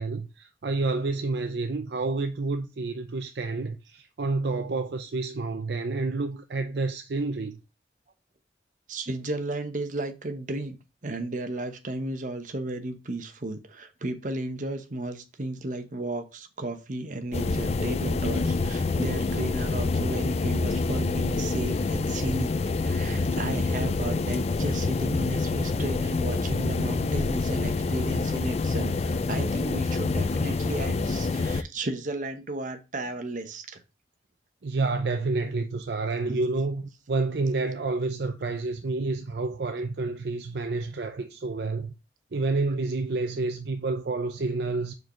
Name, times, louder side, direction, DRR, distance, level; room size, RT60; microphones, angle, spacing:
voice 1, 0.0-7.6 34.6-41.9 42.3-44.9, right 3 dB, 60° right, 0.5 m, -29 dB
voice 2, 8.9-10.8 11.0-22.5 22.8-33.8 36.3-36.4, right 2 dB, 45° right, 1.0 m, -34 dB
sound 1, 17.3-31.6, left 3 dB, 35° left, 0.4 m, -27 dB
4.7 x 4.7 x 5.6 m
head